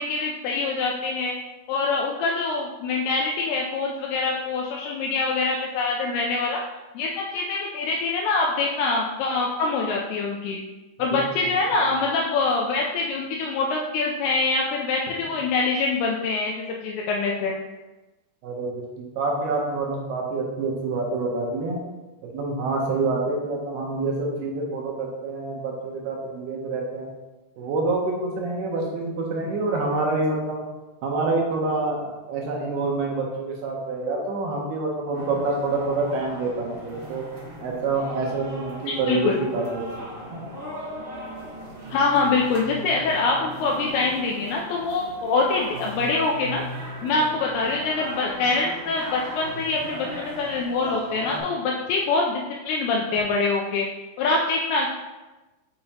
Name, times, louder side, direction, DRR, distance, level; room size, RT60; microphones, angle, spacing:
voice 1, 0.0-1.3 1.7-6.6 7.0-10.6 11.0-17.5 38.9-39.4 41.9-46.6 47.0-53.9 54.2-54.9, left 3 dB, 85° left, -1 dB, 2.3 m, -24 dB
voice 2, 18.4-21.8 22.3-27.1 27.6-30.6 31.0-37.2 37.6-40.4 47.0-47.1, right 3 dB, 75° right, -1 dB, 2.6 m, -27 dB
sound 1, 35.1-51.4, right 1 dB, 45° right, 2.8 m, -38 dB
7.1 x 5.4 x 2.9 m, 1.1 s
omnidirectional pair, 5.1 m